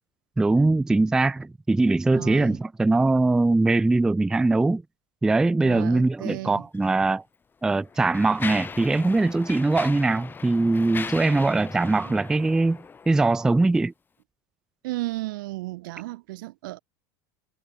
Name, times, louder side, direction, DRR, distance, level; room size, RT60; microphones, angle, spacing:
voice 1, 0.4-4.8 5.2-7.2 7.6-12.8 13.1-13.9, right 2 dB, 5° right, 0.3 m, -21 dB
voice 2, 2.1-2.6 5.6-6.6 12.1-12.2 14.8-16.8, right 19 dB, 75° right, 1.4 m, -34 dB
Mechanisms, 6.7-6.9 7.6-13.4, left 5 dB, 20° left, 2.7 m, -38 dB
supercardioid pair, 130°, 11 cm